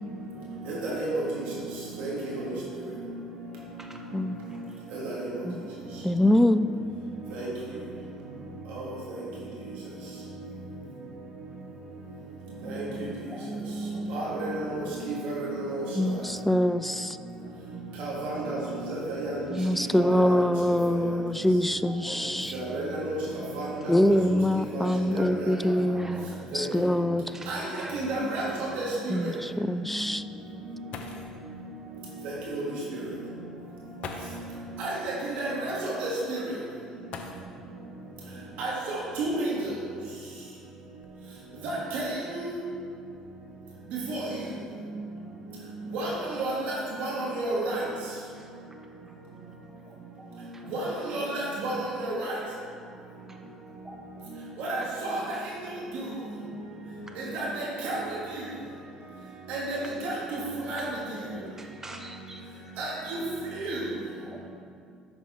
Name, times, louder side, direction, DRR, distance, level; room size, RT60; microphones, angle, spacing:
voice 1, 0.7-1.2 2.0-2.3 4.9-5.1 7.3-7.5 8.7-8.9 12.7-13.1 14.1-15.8 18.0-18.6 18.9-19.4 19.9-20.2 22.5-23.2 23.5-24.1 24.7-24.9 25.1-25.5 26.5-26.6 27.5-27.7 27.9-29.1 32.5-32.6 34.8-34.9 35.3-36.4 38.6-38.7 39.2-39.5 41.6-42.6 44.1-44.3 45.9-46.1 46.4-47.8 50.7-50.8 51.1-52.4 54.6-55.2 55.9-56.0 57.2-58.0 59.5-59.8 60.0-60.4 60.7-60.9 62.8-63.2 63.5-63.8, right 2 dB, 65° right, -5 dB, 1.7 m, -31 dB
voice 2, 4.3-4.8 7.7-7.8 13.2-14.1 19.2-20.3 21.5-23.1 23.8-28.0 48.3-48.5 49.1-49.2 49.9-50.9 53.3-53.4 53.8-54.0 54.8-54.9 55.3-55.4 57.1-57.2 58.5-58.6 59.8-60.0 60.3-60.5 61.0-62.5 64.3-64.4, right 1 dB, 15° right, 2 dB, 1.2 m, -47 dB
voice 3, 6.0-6.7 16.0-17.2 19.5-22.5 23.9-27.2 29.1-30.2, left 1 dB, 5° left, 13 dB, 0.3 m, -24 dB
sound 1, 30.9-31.5 32.7-32.8 34.0-34.6 37.1-37.8 39.2-39.3 40.0-41.5 42.2-42.5 42.9-43.3, left 4 dB, 55° left, 0.8 m, -43 dB
9.1 x 6.1 x 3.5 m, 2.3 s
hypercardioid pair, 60°, 2 cm